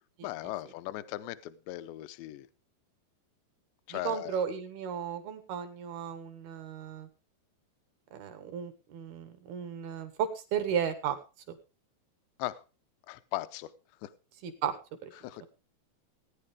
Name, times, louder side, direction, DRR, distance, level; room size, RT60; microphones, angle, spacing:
voice 1, 0.2-2.5 3.9-4.4 12.4-12.6 13.1-13.7 14.0-14.1 15.2-15.5, left 16 dB, 80° left, 12 dB, 2.7 m, -38 dB
voice 2, 3.9-7.1 8.1-11.2 11.5-11.6 14.4-14.7 15.0-15.1 15.4-15.5, right 8 dB, 70° right, 8 dB, 2.5 m, -34 dB
18.0 x 9.7 x 3.5 m, 0.32 s
omnidirectional pair, 5.5 m